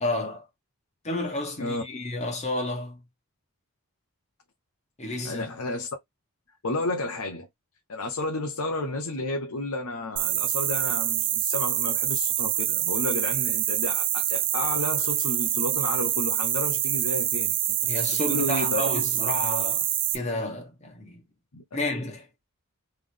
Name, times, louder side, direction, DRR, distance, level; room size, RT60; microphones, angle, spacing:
voice 1, 0.0-0.5 1.0-3.0 5.0-5.5 17.8-19.9 20.1-21.2 21.7-22.3, left 2 dB, 30° left, 1.5 m, -31 dB
voice 2, 5.2-5.9 6.6-7.5 7.9-17.6 18.3-18.8 21.5-21.6, left 2 dB, 85° left, 0.8 m, -31 dB
sound 1, 10.2-20.2, right 12 dB, 40° right, 0.5 m, -26 dB
3.7 x 3.3 x 3.3 m
head